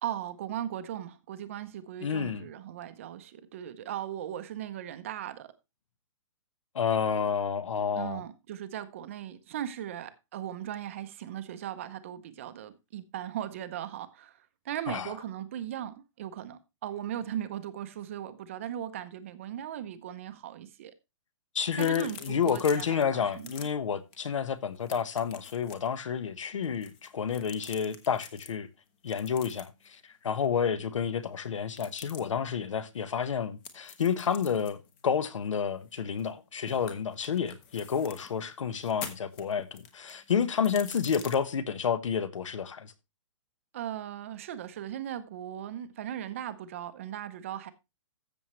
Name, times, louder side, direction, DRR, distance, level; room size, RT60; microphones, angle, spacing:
voice 1, 0.0-5.5 7.9-20.9 21.8-23.5 43.7-47.7, right 11 dB, 25° right, 0.7 m, -38 dB
voice 2, 2.0-2.5 6.7-8.2 14.9-15.1 21.5-28.7 29.0-29.7 30.2-42.9, left 7 dB, 75° left, 1.4 m, -30 dB
sound 1, 21.7-23.0 23.3-23.7 24.1-24.3 24.5-25.9 26.6-28.5 29.1-29.9 31.7-32.2 33.6-36.4 36.7-38.3 38.8-41.4, left 7 dB, 20° left, 0.9 m, -46 dB
13.5 x 7.0 x 3.1 m
hypercardioid pair, 180°, 16 cm